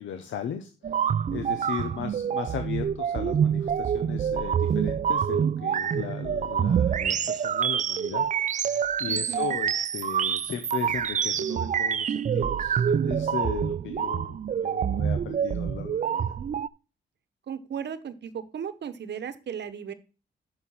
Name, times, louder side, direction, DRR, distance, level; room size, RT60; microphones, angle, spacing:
voice 1, 0.0-8.2 8.5-16.3, left 9 dB, 85° left, 7 dB, 0.8 m, -37 dB
sound 1, 0.8-16.7, right 8 dB, 40° right, 0.4 m, -26 dB
voice 2, 9.1-9.6 17.5-19.9, right 7 dB, 65° right, 12 dB, 1.0 m, -36 dB
6.8 x 6.5 x 5.5 m, 0.34 s
cardioid pair, 75°, 19 cm